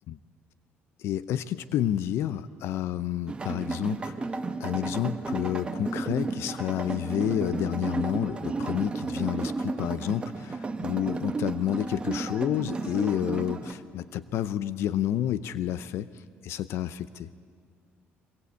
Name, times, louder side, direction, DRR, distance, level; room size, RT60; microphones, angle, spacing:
voice 1, 1.0-17.3, left 11 dB, 75° left, 15 dB, 0.6 m, -30 dB
sound 1, 3.3-13.7, right 3 dB, 20° right, 1.1 m, -33 dB
22.5 x 21.0 x 8.4 m, 2.3 s
cardioid pair, 135°, 5 cm